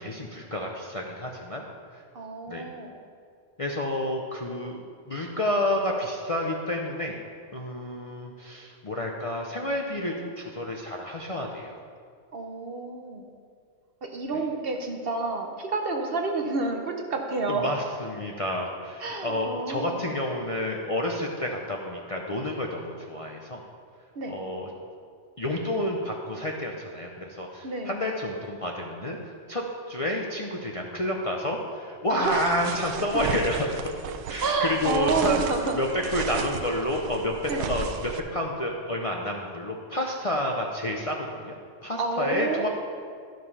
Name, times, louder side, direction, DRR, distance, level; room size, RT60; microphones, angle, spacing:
voice 1, 0.0-1.6 1.9-2.0 2.5-2.6 3.6-7.2 7.5-11.8 17.5-23.6 24.3-24.7 25.4-29.2 29.5-35.4 35.8-35.9 36.1-37.3 37.7-41.5 41.8-42.7, left 1 dB, 35° left, 0 dB, 0.6 m, -30 dB
voice 2, 2.1-2.9 12.3-13.2 14.0-17.6 19.0-20.0 24.1-24.4 27.6-28.0 32.1-32.6 33.1-33.2 34.4-35.8 37.5-37.7 42.0-42.7, right 3 dB, 55° right, 3 dB, 1.0 m, -29 dB
sound 1, 32.2-38.2, right 7 dB, 90° right, 1.0 m, -34 dB
12.0 x 5.2 x 5.5 m, 2.2 s
omnidirectional pair, 1.3 m